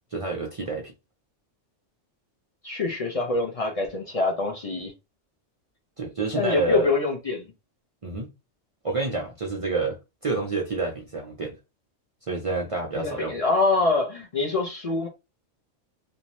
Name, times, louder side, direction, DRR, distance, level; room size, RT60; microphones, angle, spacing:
voice 1, 0.1-0.9 6.0-6.9 8.0-8.3 8.8-11.6 12.3-13.4, right 3 dB, 60° right, 0.3 m, -28 dB
voice 2, 2.6-4.9 6.3-7.5 13.0-15.1, left 3 dB, 45° left, 0.5 m, -25 dB
2.7 x 2.2 x 3.0 m
omnidirectional pair, 1.3 m